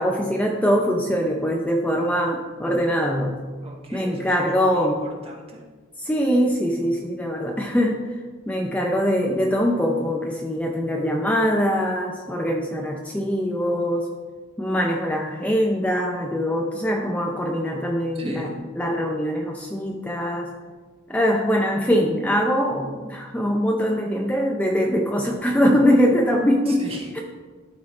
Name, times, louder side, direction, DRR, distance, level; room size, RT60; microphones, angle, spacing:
voice 1, 0.0-3.4 3.9-5.0 6.0-8.1 8.5-14.1 14.6-18.5 18.8-20.5 21.1-26.8, equal, 5° left, 0 dB, 0.5 m, -22 dB
voice 2, 3.6-5.6 18.1-18.5 26.6-27.2, right 1 dB, 30° right, 0 dB, 1.2 m, -39 dB
12.0 x 4.6 x 3.1 m, 1.4 s
head